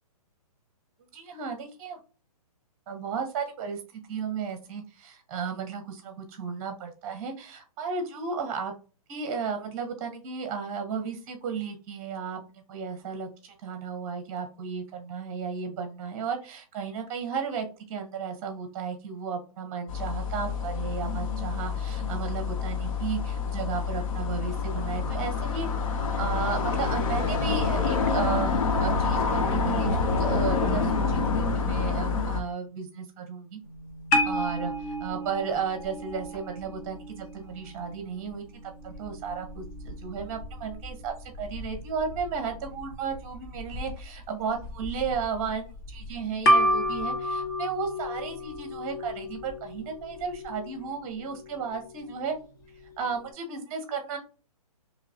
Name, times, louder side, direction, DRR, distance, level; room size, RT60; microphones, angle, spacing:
voice 1, 1.1-2.0 2.9-8.7 9.1-25.7 26.2-33.6 34.2-52.3 53.0-54.2, right 6 dB, 25° right, 6 dB, 1.1 m, -34 dB
sound 1, 19.9-32.4, left 4 dB, 60° left, 0.8 m, -27 dB
sound 2, 33.6-53.3, equal, 30° left, 0.9 m, -32 dB
3.8 x 3.1 x 2.8 m, 0.34 s
hypercardioid pair, 160°, 19 cm